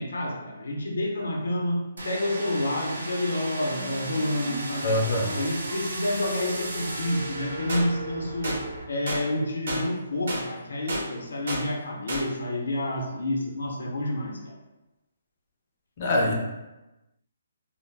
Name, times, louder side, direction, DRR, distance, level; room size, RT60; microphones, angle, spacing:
voice 1, 0.0-5.0 5.3-8.6 8.9-14.6, left 1 dB, 85° left, 0 dB, 0.6 m, -29 dB
sound 1, 2.0-8.8, right 2 dB, 90° right, 0.6 m, -35 dB
voice 2, 4.8-5.3 16.0-16.4, left 1 dB, 30° left, 0 dB, 0.4 m, -24 dB
sound 2, 7.7-7.8 8.4-8.6 9.1-9.2 9.7-9.8 10.3-10.4 10.9-11.0 11.5-11.6 12.1-12.2, right 1 dB, 50° right, 0.7 m, -30 dB
2.3 x 2.0 x 3.2 m, 1.0 s
hypercardioid pair, 175°, 0 cm